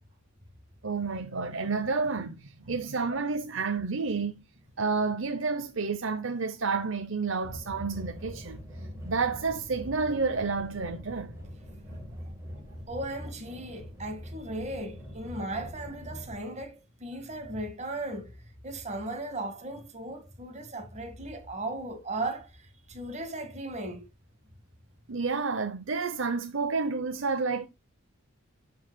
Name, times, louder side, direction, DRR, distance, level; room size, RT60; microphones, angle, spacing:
voice 1, 0.8-4.4 4.8-8.6 9.0-11.3 25.1-27.7, right 4 dB, 70° right, 0.8 m, -30 dB
sound 1, 7.4-16.3, equal, 15° right, 2.0 m, -43 dB
voice 2, 12.9-18.4 18.6-24.1, right 2 dB, 35° right, 1.9 m, -37 dB
13.0 x 4.7 x 2.3 m
head